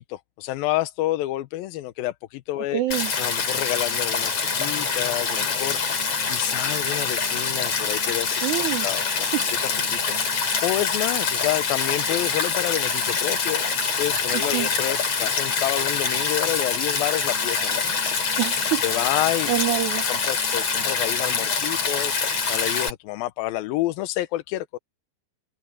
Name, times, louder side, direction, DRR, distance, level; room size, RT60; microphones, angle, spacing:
voice 1, 0.0-8.4 8.7-18.3 18.7-19.5 20.1-24.8, left 16 dB, 80° left, 2.4 m, -29 dB
voice 2, 2.7-3.1 8.4-8.8 14.5-14.7 18.4-18.8 19.5-20.0, right 15 dB, 90° right, 1.7 m, -25 dB
Stream, 2.9-22.9, left 5 dB, 45° left, 4.3 m, -25 dB
omnidirectional pair, 4.4 m